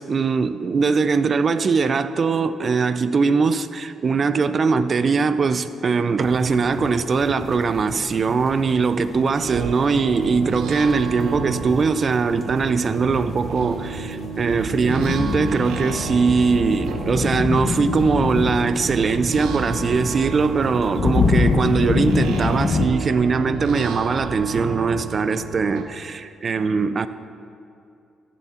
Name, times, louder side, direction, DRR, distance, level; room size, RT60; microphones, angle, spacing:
voice 1, 0.0-27.1, right 5 dB, 45° right, 0.5 m, -21 dB
sound 1, 6.2-22.9, left 4 dB, 45° left, 0.6 m, -27 dB
sound 2, 9.5-25.8, right 5 dB, 90° right, 1.0 m, -32 dB
14.0 x 7.0 x 4.3 m
cardioid pair, 90°, 0 cm